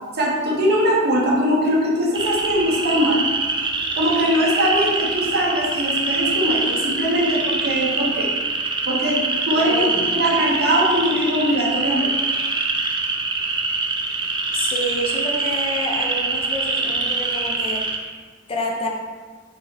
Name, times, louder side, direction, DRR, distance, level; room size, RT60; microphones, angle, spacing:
voice 1, 0.1-3.2 4.0-8.3 8.8-9.9 10.1-12.1, equal, 50° right, -4 dB, 1.0 m, -21 dB
sound 1, 2.1-18.0, right 3 dB, 20° right, 0.3 m, -24 dB
voice 2, 9.6-10.2 14.5-18.2 18.5-18.9, left 1 dB, 25° left, -1 dB, 0.6 m, -28 dB
4.0 x 2.9 x 4.0 m, 1.5 s
head